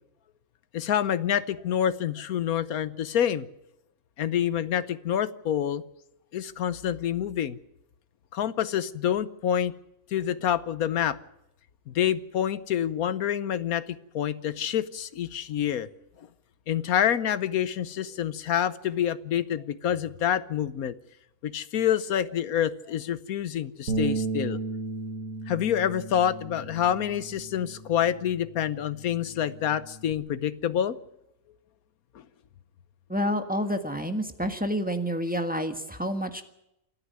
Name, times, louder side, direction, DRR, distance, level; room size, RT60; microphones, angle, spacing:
voice 1, 0.7-3.5 4.2-5.8 6.3-7.6 8.3-9.7 10.1-11.2 11.9-15.9 16.7-20.9 21.4-24.6 25.5-31.0 32.1-32.2, left 9 dB, 80° left, 14 dB, 1.4 m, -27 dB
Bass guitar, 23.9-30.1, right 3 dB, 70° right, 2.2 m, -35 dB
voice 2, 33.1-36.4, equal, 5° right, 6 dB, 1.5 m, -29 dB
27.5 x 9.8 x 9.6 m, 0.83 s
omnidirectional pair, 1.5 m